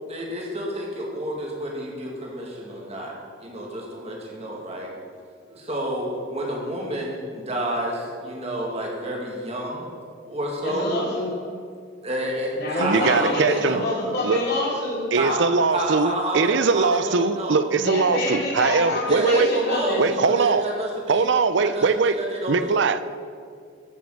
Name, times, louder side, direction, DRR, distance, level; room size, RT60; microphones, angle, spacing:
voice 1, 0.1-3.1 3.4-4.9 5.5-9.8 10.3-10.9 12.0-13.8 15.2-15.4 15.7-17.6 19.1-21.3 21.6-22.8, right 1 dB, 30° right, -1 dB, 2.2 m, -29 dB
voice 2, 10.6-11.4 12.5-15.1 17.8-20.0, left 1 dB, 55° left, -5 dB, 3.4 m, -27 dB
voice 3, 12.8-13.8 14.2-14.4 15.1-19.5 20.0-20.7 21.1-22.2 22.5-23.1, right 4 dB, 60° right, 12 dB, 0.5 m, -21 dB
14.0 x 6.7 x 6.5 m, 2.2 s
head